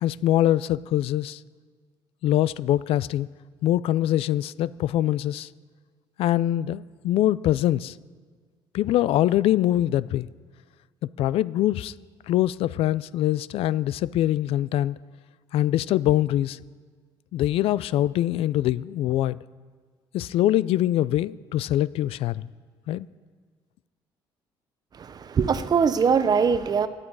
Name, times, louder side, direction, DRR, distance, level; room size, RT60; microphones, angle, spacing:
voice 1, 0.0-1.4 2.2-3.3 3.6-5.5 6.2-7.9 8.7-10.3 11.2-11.9 12.3-15.0 15.5-16.6 17.3-19.4 20.1-22.5 22.9-23.1, left 13 dB, 75° left, 19 dB, 0.4 m, -23 dB
voice 2, 25.0-26.9, right 6 dB, 40° right, 13 dB, 0.9 m, -22 dB
17.0 x 11.5 x 4.8 m, 1.5 s
cardioid pair, 95°, 10 cm